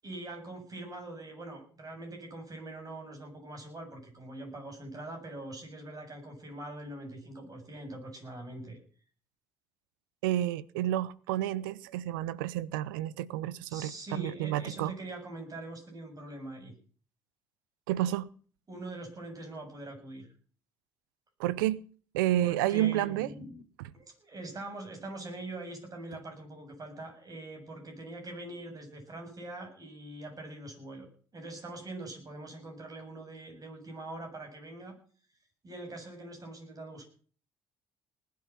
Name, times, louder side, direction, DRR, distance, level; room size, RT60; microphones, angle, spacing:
voice 1, 0.0-8.8 13.7-16.7 18.7-20.3 22.4-23.6 23.9-34.9 35.6-37.1, right 2 dB, 35° right, 7.6 m, -43 dB
voice 2, 10.2-14.9 17.9-18.3 21.4-21.8 22.1-23.3 23.8-23.9, right 13 dB, 90° right, 0.6 m, -30 dB
19.5 x 8.6 x 5.8 m
hypercardioid pair, 65°, 11 cm